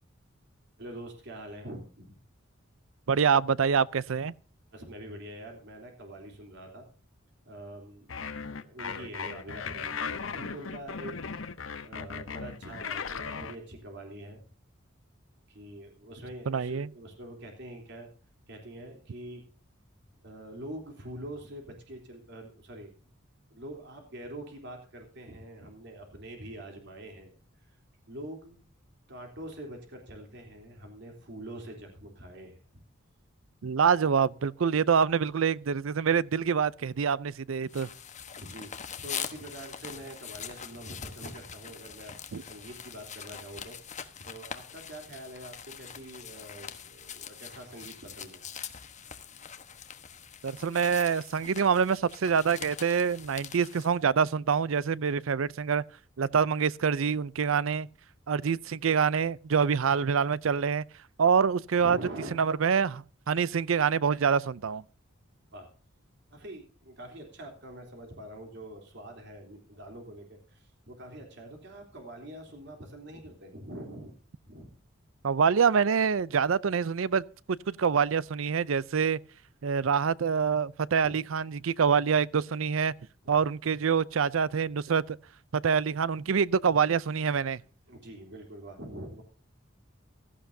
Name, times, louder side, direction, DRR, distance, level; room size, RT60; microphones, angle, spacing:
voice 1, 0.8-2.2 4.7-6.9 7.4-11.1 11.8-14.5 15.5-18.1 18.5-19.4 20.2-22.9 23.5-27.3 27.6-27.8 28.1-28.6 29.1-32.8 38.4-38.7 39.0-43.8 44.2-48.4 61.8-62.3 65.5-65.7 66.3-74.2 74.4-74.7 81.0-81.2 83.2-83.3 87.9-89.2, right 1 dB, 60° right, 3.4 m, -44 dB
voice 2, 3.1-4.3 16.5-16.9 33.6-37.9 42.3-42.4 50.4-55.8 56.2-57.9 58.3-60.8 61.2-62.0 62.3-64.8 75.2-79.2 79.6-82.9 83.3-85.2 85.5-87.6, right 6 dB, 80° right, 0.5 m, -26 dB
sound 1, 8.1-13.6, left 5 dB, 75° left, 1.0 m, -37 dB
sound 2, 37.7-53.9, left 8 dB, 35° left, 1.2 m, -43 dB
16.0 x 13.5 x 2.7 m
head